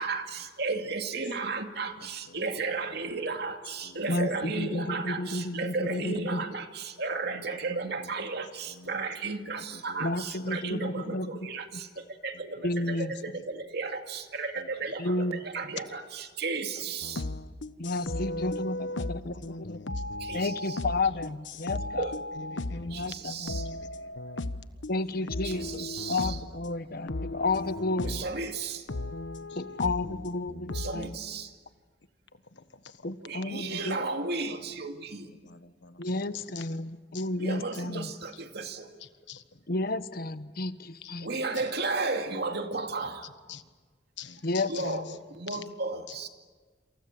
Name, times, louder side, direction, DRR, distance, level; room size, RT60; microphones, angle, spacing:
voice 1, 0.0-17.3 20.2-20.8 22.0-22.2 22.9-23.7 25.4-26.4 28.0-28.9 30.7-31.5 33.2-35.3 37.4-38.9 41.2-43.3 44.7-46.3, right 3 dB, 65° right, 5 dB, 2.4 m, -34 dB
voice 2, 2.0-2.6 3.8-4.1 4.8-4.9 5.2-5.4 7.4-8.1 8.7-9.0 9.6-10.1 10.4-10.6 11.0-11.2 12.3-12.4 12.8-13.0 13.3-13.4 14.6-14.7 18.1-20.0 22.5-23.1 23.6-24.1 25.7-25.8 27.0-27.1 29.5-30.0 32.5-33.1 33.6-33.8 35.4-36.7 37.1-37.3 39.0-39.6 41.0-41.1 41.5-41.7 43.2-43.6 44.2-45.2 45.5-45.6 46.1-46.2, left 7 dB, 75° left, 11 dB, 1.5 m, -48 dB
voice 3, 4.1-6.4 10.0-11.4 12.6-13.1 15.0-15.4 17.8-19.8 20.3-22.1 22.7-23.5 24.9-28.2 29.6-31.2 33.0-34.1 36.0-38.1 39.7-41.3 44.4-45.1, left 2 dB, 55° left, 13 dB, 1.1 m, -32 dB
sound 1, 17.0-23.1 23.5-24.9 25.3-26.6 27.1-28.4 28.9-31.0, left 2 dB, 90° left, 1.1 m, -36 dB
27.5 x 27.5 x 7.7 m, 1.5 s
head